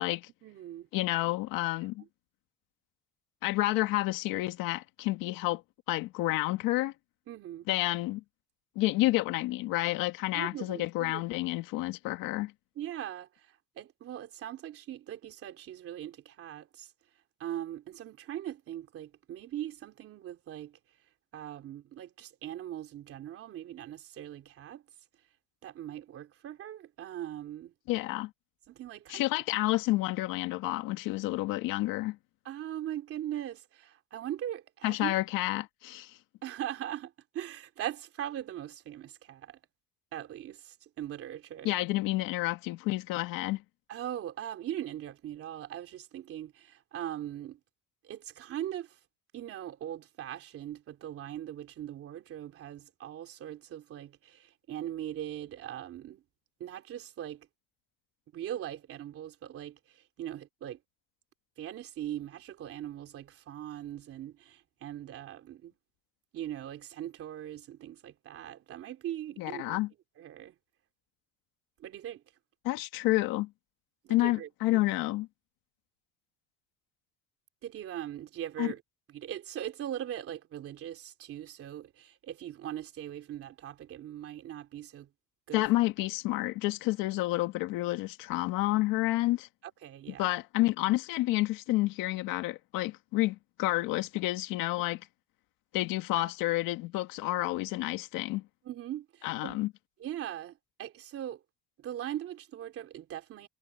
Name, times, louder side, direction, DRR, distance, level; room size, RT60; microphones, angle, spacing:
voice 1, 0.4-0.9 7.3-7.7 10.3-11.2 12.7-16.9 17.4-20.8 21.3-24.8 25.6-27.7 28.7-29.3 32.4-35.1 36.4-39.6 40.1-41.7 43.9-47.6 48.0-49.0 49.3-56.2 56.6-57.5 58.3-60.8 61.6-65.7 66.3-69.8 70.2-70.5 71.8-72.2 74.0-74.8 77.6-78.8 79.1-85.1 85.5-85.6 89.6-90.4 98.6-99.6 100.0-101.4 101.8-103.5, right 11 dB, 40° right, 3.2 m, -40 dB
voice 2, 0.9-2.0 3.4-5.6 5.9-6.9 7.7-8.2 8.8-12.5 27.9-28.3 29.1-32.2 34.8-36.2 41.7-43.6 69.4-69.9 72.6-73.5 74.1-75.3 78.6-78.7 85.5-89.5 90.2-95.0 95.7-98.4 99.2-99.7, left 18 dB, 75° left, 1.9 m, -29 dB
cardioid pair, 170°, 34 cm